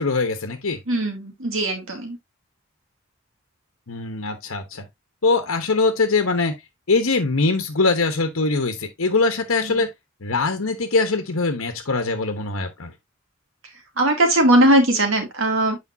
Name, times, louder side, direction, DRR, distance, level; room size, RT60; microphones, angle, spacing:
voice 1, 0.0-0.8 3.9-4.8 5.2-6.5 6.9-9.9 10.2-12.9, left 3 dB, 75° left, 1.1 m, -22 dB
voice 2, 0.9-2.2 9.8-9.9 14.0-15.8, right 1 dB, 70° right, 2.4 m, -19 dB
8.5 x 5.0 x 2.6 m
head